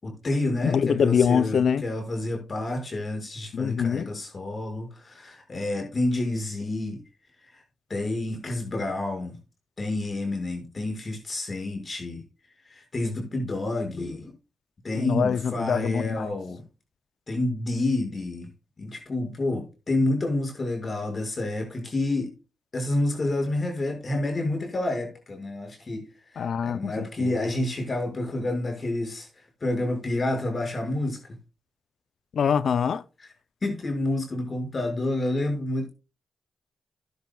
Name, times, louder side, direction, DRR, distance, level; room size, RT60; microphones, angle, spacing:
voice 1, 0.0-7.0 7.5-7.6 7.9-9.3 9.8-12.2 12.7-14.3 14.8-16.6 17.3-18.5 18.8-22.3 22.7-26.1 26.3-29.3 29.6-31.2 33.6-35.9, left 2 dB, 45° left, 6.0 m, -29 dB
voice 2, 0.6-1.9 3.5-4.1 15.0-16.3 26.4-27.3 32.3-33.0, left 7 dB, 75° left, 0.6 m, -24 dB
15.5 x 10.5 x 2.4 m
supercardioid pair, 50°, 0 cm